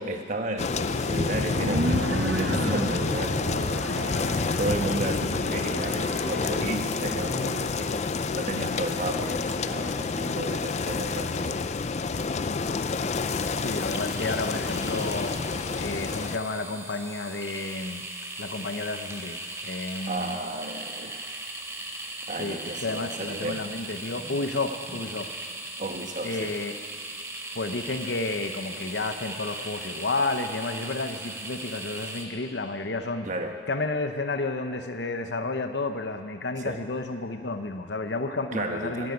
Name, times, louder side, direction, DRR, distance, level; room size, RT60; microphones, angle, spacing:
voice 1, 0.0-3.6 4.6-11.6 20.1-21.4 22.3-23.6 25.8-26.5 33.2-33.6 36.6-36.8 38.5-39.1, right 2 dB, 45° right, 4 dB, 1.2 m, -33 dB
sound 1, 0.6-16.4, left 4 dB, 40° left, 0.4 m, -28 dB
sound 2, 0.9-7.7, right 1 dB, 70° right, 1.3 m, -33 dB
sound 3, 13.3-32.3, right 2 dB, 15° right, 1.3 m, -38 dB
voice 2, 13.6-15.4 15.7-18.0 18.4-19.4 19.6-20.4 22.4-25.3 26.2-26.8 27.5-33.3 33.7-39.1, left 3 dB, 75° left, 8 dB, 0.9 m, -31 dB
14.0 x 10.0 x 9.6 m, 2.2 s
head